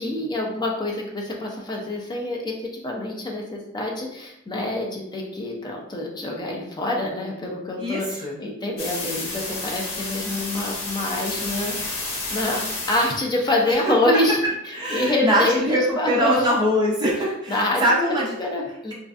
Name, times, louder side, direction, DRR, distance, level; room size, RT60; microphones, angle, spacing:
voice 1, 0.0-14.4 14.9-16.4 17.5-18.9, left 2 dB, 20° left, -1 dB, 0.4 m, -26 dB
voice 2, 7.8-8.4 13.7-13.9 14.7-18.4, equal, 20° right, -5 dB, 0.7 m, -22 dB
sound 1, 8.8-13.2, left 2 dB, 85° left, 0.7 m, -31 dB
2.4 x 2.3 x 2.4 m, 0.81 s
head